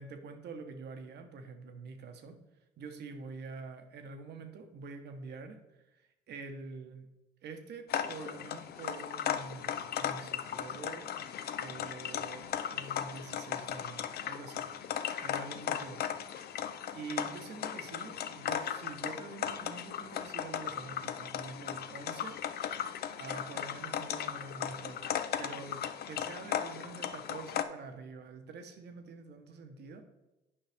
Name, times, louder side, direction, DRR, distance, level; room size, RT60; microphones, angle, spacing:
voice 1, 0.0-2.3 2.8-5.6 5.9-7.1 7.4-11.1 11.6-14.7 15.2-16.0 16.4-16.5 16.9-22.4 22.7-25.0 25.4-30.0, right 4 dB, 65° right, 6 dB, 1.1 m, -46 dB
sound 1, 7.9-27.6, left 9 dB, 60° left, 0.5 m, -37 dB
8.7 x 5.4 x 3.5 m, 0.99 s
cardioid pair, 90°, 19 cm